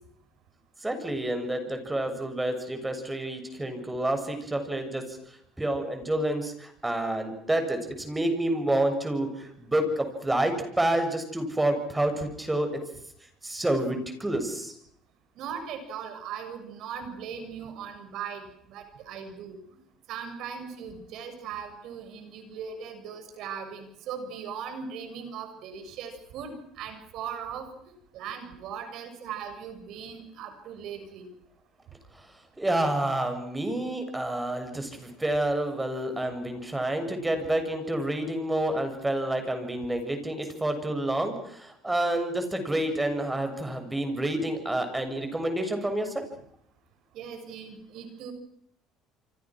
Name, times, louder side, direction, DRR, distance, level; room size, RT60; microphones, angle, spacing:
voice 1, 0.8-12.9 13.4-14.7 32.1-32.2 32.6-46.2, right 1 dB, 10° right, 7 dB, 7.1 m, -29 dB
voice 2, 15.4-19.6 20.1-27.7 28.1-31.2 47.1-48.3, right 7 dB, 65° right, 7 dB, 6.8 m, -39 dB
28.5 x 25.0 x 6.3 m, 0.70 s
supercardioid pair, 85°, 0 cm